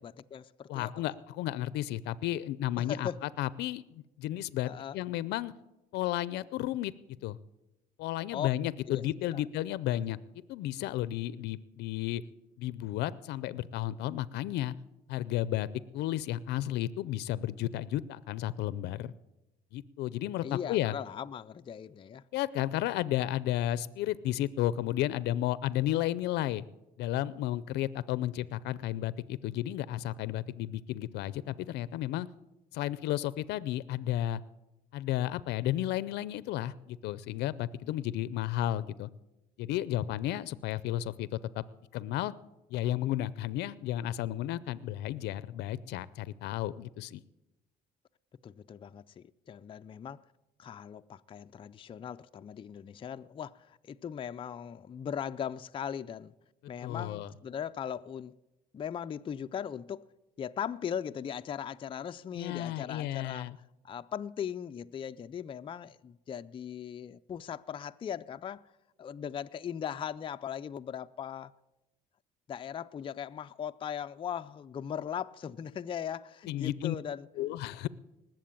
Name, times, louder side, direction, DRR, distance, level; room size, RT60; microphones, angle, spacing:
voice 1, 0.0-0.9 2.8-3.2 4.6-5.0 8.3-8.5 8.9-9.0 9.3-9.4 9.9-10.0 20.4-22.2 48.4-50.3 50.6-56.3 56.7-58.4 58.7-60.1 60.4-63.5 63.8-68.7 69.0-71.5 72.5-77.3, left 8 dB, 30° left, 0.4 m, -39 dB
voice 2, 0.7-3.1 3.4-5.5 5.9-6.9 7.2-7.4 8.0-10.2 10.5-12.2 12.6-14.7 15.1-15.7 15.9-19.1 19.7-20.9 22.3-26.6 27.0-32.3 32.7-34.4 34.9-39.1 39.6-41.6 41.9-42.3 42.7-47.2 56.8-57.3 62.4-63.6 76.5-77.0 77.4-77.9, left 13 dB, 80° left, 0.5 m, -33 dB
19.5 x 7.6 x 8.8 m
cardioid pair, 110°, 17 cm